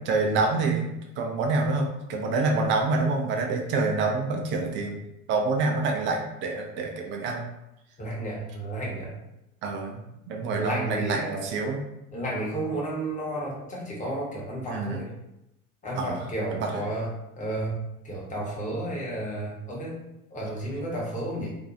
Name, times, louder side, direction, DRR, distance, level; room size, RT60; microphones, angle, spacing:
voice 1, 0.0-5.0 5.3-7.4 9.6-11.8 14.7-15.0 16.0-16.2 16.5-16.7, right 3 dB, 30° right, 2 dB, 0.4 m, -27 dB
voice 2, 8.0-9.1 10.5-11.5 12.1-15.1 15.8-17.1 17.4-20.0 20.3-21.6, right 1 dB, 15° left, -4 dB, 1.0 m, -32 dB
2.5 x 2.2 x 2.7 m, 0.86 s
figure-of-eight pair, 75°, 44 cm